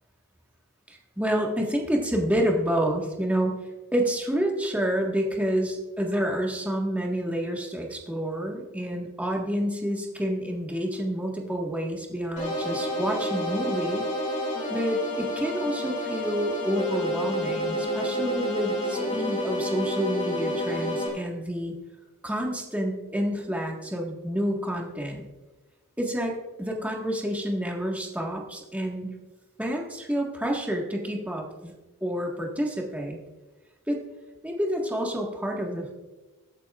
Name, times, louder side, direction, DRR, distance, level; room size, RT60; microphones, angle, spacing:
voice 1, 0.9-3.6 3.9-14.0 14.7-21.7 22.2-25.3 26.0-29.1 29.6-31.7 32.0-33.2 33.9-34.0 34.4-35.9, equal, 5° right, -1 dB, 1.6 m, -29 dB
sound 1, 12.4-21.1, equal, 35° left, 3.1 m, -29 dB
23.5 x 8.4 x 2.5 m, 1.2 s
head